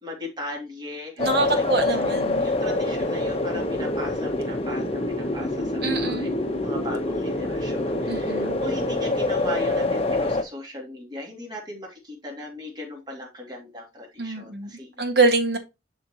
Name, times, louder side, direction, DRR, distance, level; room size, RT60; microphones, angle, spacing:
voice 1, 0.0-15.1, left 1 dB, 25° right, 2.4 m, -37 dB
sound 1, 1.2-10.4, left 2 dB, 35° left, 1.0 m, -26 dB
voice 2, 1.2-2.5 5.8-6.4 8.1-8.6 14.2-14.7 15.0-15.6, right 3 dB, 60° right, 1.8 m, -24 dB
11.0 x 3.8 x 2.9 m
head